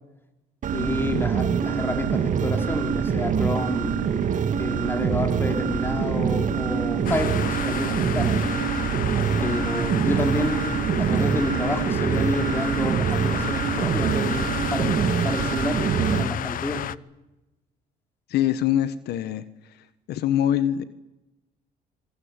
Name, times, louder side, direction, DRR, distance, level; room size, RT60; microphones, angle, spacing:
sound 1, 0.6-16.2, right 7 dB, 50° right, 2.2 m, -25 dB
voice 1, 0.7-4.0 4.6-8.5 9.4-10.7 11.0-15.0 15.2-16.9, left 1 dB, 15° left, 5 dB, 4.8 m, -29 dB
sound 2, 7.0-17.0, left 11 dB, 55° left, 0.9 m, -32 dB
voice 2, 18.3-19.4 20.1-20.8, left 11 dB, 75° left, 13 dB, 1.5 m, -23 dB
26.5 x 21.0 x 9.0 m, 0.99 s
cardioid pair, 110°, 17 cm